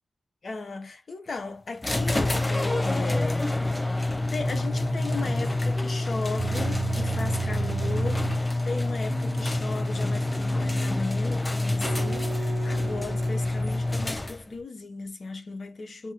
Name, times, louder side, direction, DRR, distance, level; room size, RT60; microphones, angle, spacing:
voice 1, 0.4-3.6 3.9-16.1, left 3 dB, 70° left, 1.3 m, -36 dB
sound 1, 1.8-14.6, left 2 dB, 25° left, 1.1 m, -27 dB
sound 2, 4.4-5.7 6.4-8.5 9.1-11.1 11.8-13.8, right 4 dB, 70° right, 1.1 m, -34 dB
7.4 x 3.1 x 2.3 m
cardioid pair, 60°, 0 cm